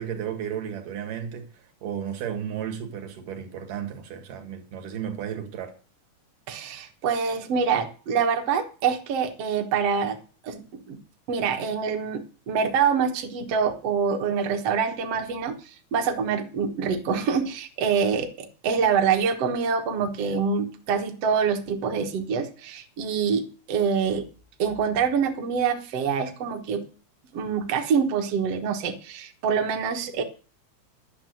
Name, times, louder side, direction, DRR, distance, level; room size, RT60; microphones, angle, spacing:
voice 1, 0.0-5.7, right 8 dB, 80° right, 3.3 m, -33 dB
voice 2, 6.5-10.2 10.4-11.0 11.3-24.3 24.6-26.8 27.3-30.2, right 6 dB, 55° right, 2.1 m, -25 dB
11.5 x 6.7 x 7.7 m
omnidirectional pair, 3.7 m